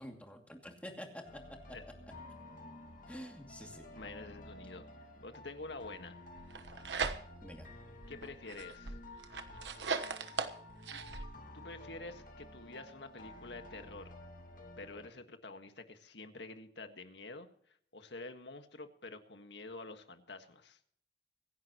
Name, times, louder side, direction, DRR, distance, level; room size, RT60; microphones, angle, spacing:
voice 1, 0.0-1.4 1.7-1.8 3.1-3.9 7.4-7.7, equal, 10° left, 2 dB, 2.5 m, -47 dB
sound 1, 1.2-15.1, left 2 dB, 50° left, 2.3 m, -52 dB
voice 2, 3.7-4.9 5.2-6.2 8.1-9.0 11.5-14.1 14.8-20.8, left 3 dB, 80° left, 7 dB, 1.7 m, -48 dB
sound 2, 6.4-7.6 8.0-11.3, right 4 dB, 85° right, 1.2 m, -39 dB
25.5 x 11.0 x 3.0 m, 0.65 s
head